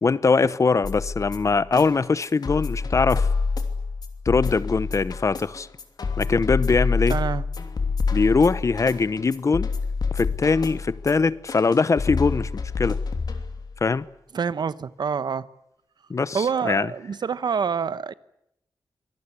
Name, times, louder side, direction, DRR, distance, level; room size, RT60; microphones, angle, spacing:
voice 1, 0.0-3.3 4.3-5.7 6.2-7.2 8.1-9.7 10.1-13.0 13.8-14.1 16.1-16.9, left 4 dB, 45° left, 0.9 m, -22 dB
sound 1, 0.8-13.8, left 4 dB, 65° left, 2.9 m, -27 dB
voice 2, 7.1-7.4 14.3-15.5 16.3-18.1, right 6 dB, 70° right, 1.0 m, -26 dB
25.5 x 18.5 x 9.8 m
wide cardioid pair, 120°, 8 cm